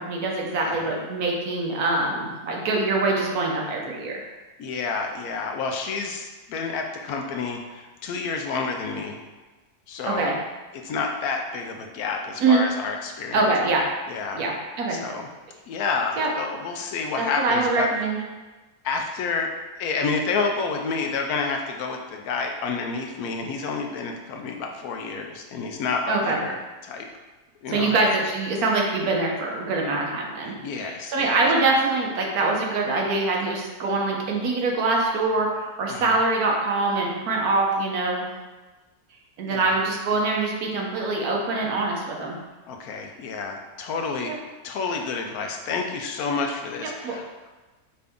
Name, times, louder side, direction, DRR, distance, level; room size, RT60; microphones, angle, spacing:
voice 1, 0.0-4.3 10.0-10.4 12.4-12.7 13.3-13.9 14.3-15.0 16.2-16.3 17.2-18.2 26.1-26.4 27.7-38.3 39.4-42.4 44.3-44.4 47.0-47.2, right 3 dB, 70° right, -1 dB, 1.2 m, -24 dB
voice 2, 4.6-9.2 9.9-10.3 10.7-13.4 14.1-14.4 14.9-15.3 15.7-17.9 18.8-19.5 19.8-26.6 26.8-27.1 27.6-27.9 30.4-31.4 35.9-36.1 39.4-39.7 42.7-44.3 44.6-47.5, left 4 dB, 75° left, 3 dB, 1.0 m, -29 dB
5.6 x 2.6 x 3.5 m, 1.2 s
omnidirectional pair, 1.7 m